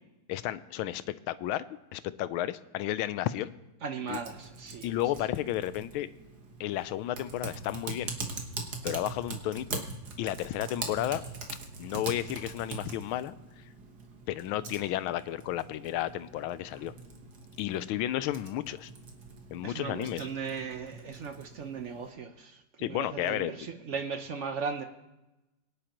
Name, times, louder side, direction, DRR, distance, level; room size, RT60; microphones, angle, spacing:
voice 1, 0.3-1.6 1.9-3.5 4.1-4.2 4.8-6.1 6.6-8.1 8.8-9.9 10.2-11.2 11.8-13.4 14.3-16.9 17.6-18.9 19.5-20.3 22.8-23.5, left 13 dB, 80° left, 15 dB, 1.4 m, -32 dB
voice 2, 3.8-4.9 19.6-24.8, right 5 dB, 75° right, 6 dB, 0.6 m, -37 dB
Typing, 4.1-22.1, right 3 dB, 55° right, 1.8 m, -42 dB
22.0 x 10.0 x 3.0 m, 1.0 s
omnidirectional pair, 2.2 m